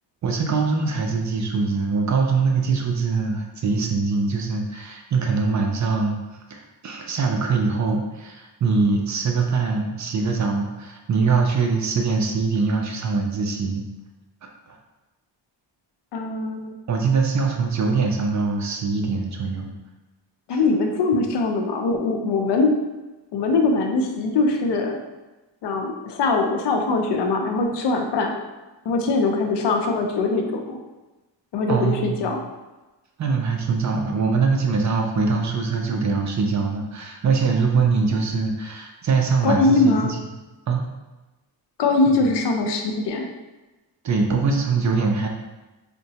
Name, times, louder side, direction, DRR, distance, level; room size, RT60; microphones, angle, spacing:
voice 1, 0.2-6.2 6.5-13.8 14.7-14.8 16.9-19.7 20.5-20.6 31.7-32.1 33.2-40.0 40.7-40.9 42.1-42.3 44.0-45.3, right 4 dB, 40° right, 2 dB, 0.4 m, -23 dB
voice 2, 16.1-16.7 20.5-22.7 23.3-25.0 25.6-28.3 28.8-30.8 31.5-32.4 39.4-40.1 41.8-43.3, left 3 dB, 65° left, 3 dB, 0.6 m, -22 dB
3.8 x 2.2 x 2.7 m, 1.1 s
cardioid pair, 115°, 45 cm